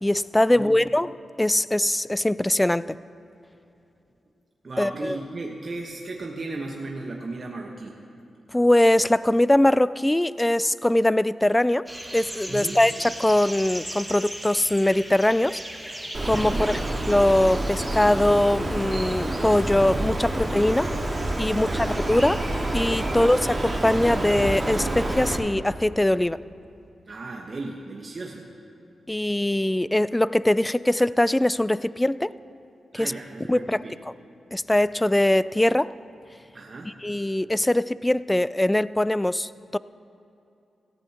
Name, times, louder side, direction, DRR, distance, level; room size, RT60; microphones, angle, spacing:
voice 1, 0.0-1.1 1.4-3.0 4.8-5.2 8.5-11.8 12.1-15.6 16.2-20.9 21.4-22.5 22.7-26.4 29.1-32.3 32.9-33.1 33.5-34.1 34.5-35.9 37.0-39.8, left 1 dB, 15° left, 17 dB, 0.3 m, -22 dB
voice 2, 4.6-8.0 12.5-12.8 16.4-16.8 21.5-22.0 23.0-23.3 27.1-28.5 32.9-34.0 36.5-36.9, right 3 dB, 45° right, -1 dB, 1.2 m, -36 dB
sound 1, 11.9-18.4, right 1 dB, 5° right, 1.5 m, -38 dB
Bird, 16.1-25.4, right 1 dB, 25° right, 3.6 m, -28 dB
17.5 x 15.0 x 2.9 m, 2.8 s
cardioid pair, 60°, 0 cm